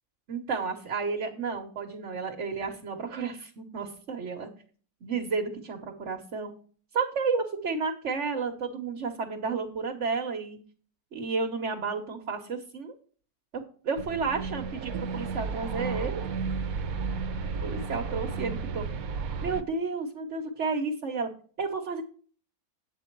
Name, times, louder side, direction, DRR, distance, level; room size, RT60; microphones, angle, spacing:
voice 1, 0.3-4.5 5.0-6.5 6.9-10.6 11.1-12.9 13.5-16.2 17.6-18.9 19.4-21.3 21.6-22.0, right 4 dB, 55° right, 2 dB, 1.4 m, -32 dB
sound 1, 14.0-19.6, right 5 dB, 75° right, 1.2 m, -33 dB
9.1 x 7.6 x 4.5 m, 0.43 s
omnidirectional pair, 1.6 m